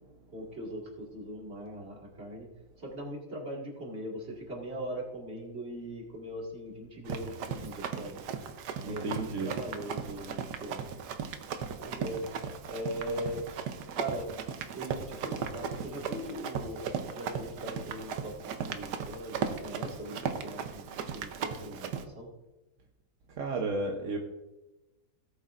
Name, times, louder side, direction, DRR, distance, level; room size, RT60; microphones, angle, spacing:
voice 1, 0.3-2.5 2.8-8.2 8.8-10.9 11.8-12.3 12.7-13.5 13.9-14.4 14.7-22.3, equal, 35° right, -2 dB, 2.3 m, -40 dB
Run, 7.1-22.0, right 7 dB, 70° right, 1.3 m, -37 dB
voice 2, 8.8-9.5 23.4-24.2, right 2 dB, 50° right, 2 dB, 1.0 m, -32 dB
18.0 x 8.1 x 2.5 m, 1.0 s
omnidirectional pair, 2.0 m